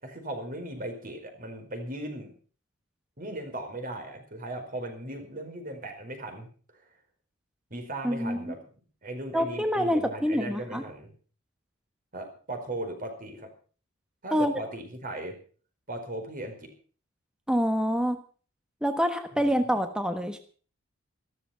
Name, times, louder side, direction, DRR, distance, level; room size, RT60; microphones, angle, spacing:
voice 1, 0.0-2.3 3.2-6.5 7.7-8.6 9.0-11.1 12.1-13.5 14.2-15.4 15.9-16.7 19.3-19.6, right 1 dB, 45° right, 5 dB, 4.8 m, -37 dB
voice 2, 8.0-8.5 9.3-10.8 14.3-14.5 17.5-18.2 18.8-20.4, equal, 5° right, 7 dB, 1.3 m, -26 dB
14.5 x 13.5 x 5.9 m, 0.41 s
head